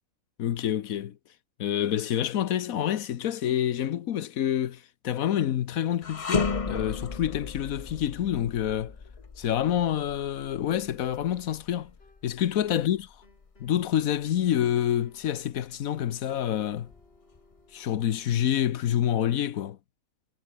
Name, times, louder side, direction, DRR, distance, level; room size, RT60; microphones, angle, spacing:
voice 1, 0.4-1.2 1.6-8.9 9.4-11.9 12.2-13.1 13.6-16.9 17.7-19.8, left 10 dB, 80° left, 1.3 m, -27 dB
sound 1, 6.0-15.3 15.7-15.9 16.7-17.6, left 5 dB, 30° left, 0.8 m, -35 dB
sound 2, 11.2-12.4 12.7-18.6, left 2 dB, 45° left, 5.1 m, -60 dB
omnidirectional pair, 1.5 m